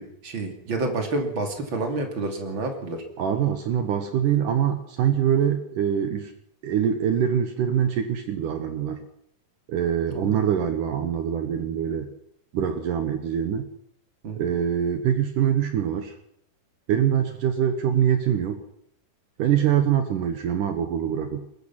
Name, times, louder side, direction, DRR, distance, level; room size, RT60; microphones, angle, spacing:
voice 1, 0.0-3.0 10.1-10.4 14.2-14.5, right 2 dB, 35° right, 4 dB, 3.2 m, -29 dB
voice 2, 3.2-6.3 6.6-9.0 9.7-12.1 12.5-13.7 14.4-16.1 16.9-18.6 19.4-21.4, right 9 dB, 65° right, 8 dB, 2.7 m, -24 dB
21.5 x 21.0 x 5.9 m, 0.70 s
omnidirectional pair, 4.2 m